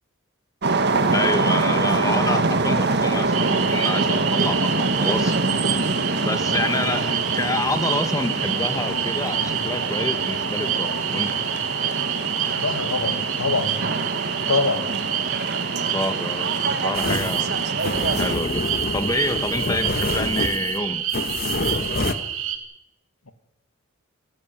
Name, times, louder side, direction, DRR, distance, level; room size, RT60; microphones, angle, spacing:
sound 1, 0.6-18.3, right 3 dB, 50° right, 1.7 m, -25 dB
voice 1, 1.1-5.4 6.2-11.3 15.2-15.3 15.7-16.5 16.8-17.5 18.2-18.7 18.9-21.0, left 2 dB, 15° left, 9 dB, 1.6 m, -28 dB
sound 2, 3.3-22.6, right 10 dB, 65° right, 3.0 m, -28 dB
voice 2, 12.5-13.8 14.5-14.9, left 3 dB, 80° left, 9 dB, 2.3 m, -24 dB
sound 3, 16.9-22.1, left 2 dB, 45° left, 1.5 m, -27 dB
28.5 x 12.0 x 9.4 m, 0.87 s
head